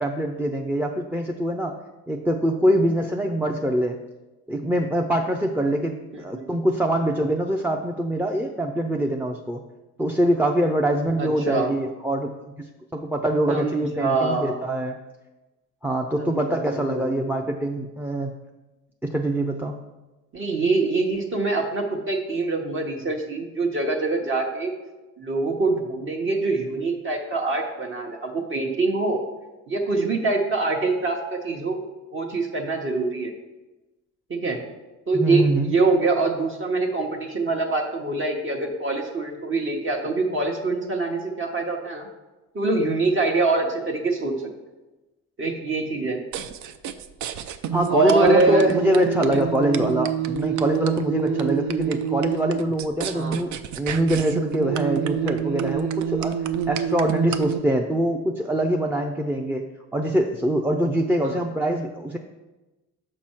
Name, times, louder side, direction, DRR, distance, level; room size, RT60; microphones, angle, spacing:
voice 1, 0.0-1.8 2.1-4.0 4.5-9.6 10.0-15.0 15.8-18.3 19.0-19.8 35.1-35.7 47.7-59.6 59.9-62.2, right 1 dB, 5° right, 4 dB, 0.4 m, -24 dB
voice 2, 11.2-11.7 13.5-14.6 16.2-17.3 20.3-24.7 25.2-29.2 29.7-31.8 32.1-33.3 34.3-34.6 35.1-42.1 42.5-44.5 45.4-46.2 47.9-48.7 49.3-49.4 53.1-53.4 61.2-61.4, right 3 dB, 40° right, 0 dB, 1.0 m, -24 dB
sound 1, 46.3-57.6, right 9 dB, 75° right, 0.5 m, -27 dB
6.0 x 5.4 x 4.4 m, 1.1 s
cardioid pair, 90°, 30 cm